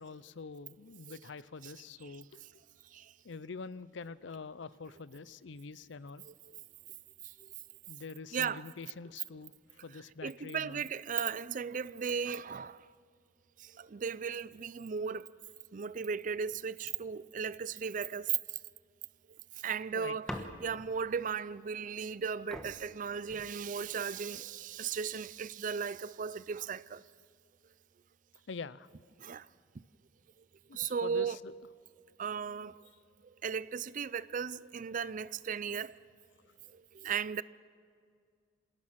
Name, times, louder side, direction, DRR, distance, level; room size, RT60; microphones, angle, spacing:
voice 1, 0.0-2.4 3.2-6.2 7.9-10.9 19.9-20.2 28.5-28.9 30.7-31.5, left 4 dB, 65° left, 0.6 m, -45 dB
voice 2, 6.3-6.6 8.3-8.6 10.2-12.9 13.6-15.3 15.7-18.4 19.6-20.3 20.6-27.0 29.2-29.5 30.7-31.4 32.2-32.8 33.4-36.0 36.7-37.4, right 6 dB, 40° right, 0.4 m, -36 dB
sound 1, 20.3-21.0 22.1-22.2 22.5-24.0 24.7-25.2, equal, 5° left, 1.3 m, -45 dB
27.0 x 17.5 x 5.9 m
head